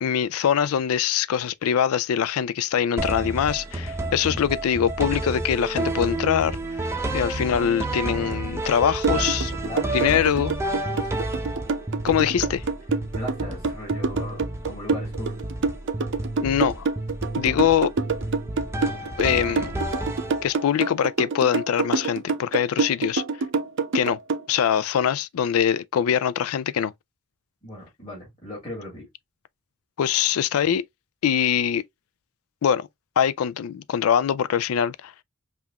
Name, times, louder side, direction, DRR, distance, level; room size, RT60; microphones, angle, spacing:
voice 1, 0.0-6.6 7.1-9.5 9.9-10.5 12.0-12.6 16.4-16.9 17.4-17.9 19.2-19.8 20.4-23.2 23.9-24.2 24.5-26.9 30.0-30.8 31.2-31.8 32.6-32.9 33.2-35.1, left 8 dB, 75° left, 0.3 m, -23 dB
sound 1, 3.0-20.8, right 2 dB, 10° right, 0.6 m, -30 dB
sound 2, 9.0-24.4, right 4 dB, 60° right, 0.6 m, -26 dB
voice 2, 9.6-11.2 13.1-15.4 27.6-29.1, left 1 dB, 25° left, 2.7 m, -38 dB
5.4 x 2.5 x 2.8 m
head